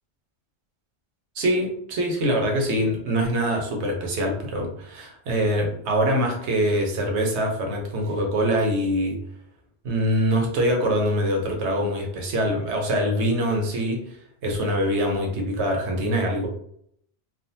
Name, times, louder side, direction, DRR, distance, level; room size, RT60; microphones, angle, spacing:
voice 1, 1.4-9.2 9.8-14.0 14.4-16.5, equal, 85° right, 2 dB, 1.1 m, -24 dB
3.5 x 2.2 x 2.6 m, 0.68 s
omnidirectional pair, 1.1 m